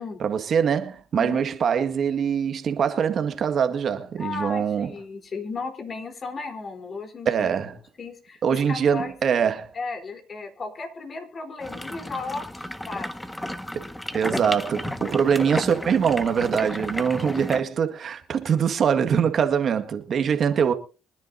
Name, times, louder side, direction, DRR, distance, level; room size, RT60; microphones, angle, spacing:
voice 1, 0.2-4.9 7.3-7.8 8.4-9.7 13.7-13.8 14.1-20.7, right 7 dB, 55° right, 1.7 m, -23 dB
voice 2, 4.2-7.5 8.0-9.1 9.7-13.1 20.5-20.6, left 4 dB, 45° left, 3.8 m, -35 dB
sound 1, 11.6-17.6, left 1 dB, 10° left, 1.5 m, -33 dB
24.5 x 10.5 x 2.7 m
supercardioid pair, 75°, 0 cm